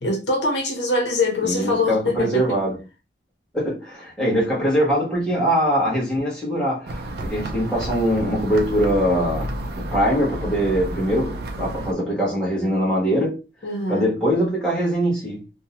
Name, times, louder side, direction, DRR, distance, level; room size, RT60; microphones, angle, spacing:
voice 1, 0.0-2.4 13.6-14.1, left 2 dB, 80° left, 0.8 m, -23 dB
voice 2, 1.4-2.8 3.5-13.4 13.9-15.4, equal, 5° left, 1.2 m, -22 dB
sound 1, 6.9-11.9, right 1 dB, 60° right, 0.4 m, -31 dB
2.7 x 2.2 x 2.9 m
head